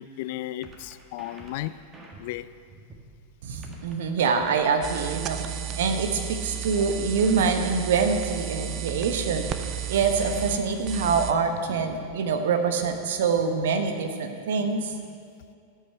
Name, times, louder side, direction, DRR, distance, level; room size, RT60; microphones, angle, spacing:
voice 1, 0.0-1.7 2.2-2.5 6.8-6.9, left 15 dB, 50° left, 15 dB, 0.3 m, -34 dB
sound 1, 0.6-3.1 3.6-6.1 6.6-9.1 9.6-12.1, right 2 dB, 20° right, 1.9 m, -46 dB
voice 2, 3.4-9.6 9.9-14.9, right 5 dB, 60° right, 6 dB, 1.1 m, -25 dB
sound 2, 4.8-11.3, right 10 dB, 35° right, 0.6 m, -33 dB
13.5 x 8.7 x 5.7 m, 2.3 s
figure-of-eight pair, 90°, 0 cm